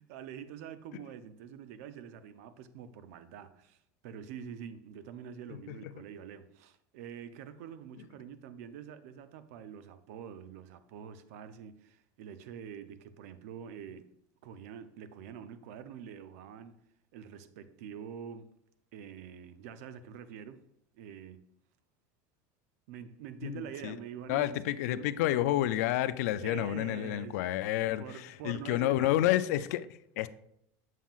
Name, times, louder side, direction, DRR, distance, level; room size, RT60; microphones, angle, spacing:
voice 1, 0.0-3.8 4.0-14.1 14.4-16.8 17.1-18.5 18.9-20.6 20.9-21.4 22.9-24.6 24.9-25.1 26.4-29.3, right 8 dB, 75° right, 0.5 m, -46 dB
voice 2, 23.4-24.0 24.3-30.3, left 14 dB, 90° left, 0.3 m, -30 dB
7.3 x 5.5 x 2.4 m
cardioid pair, 165°, 8 cm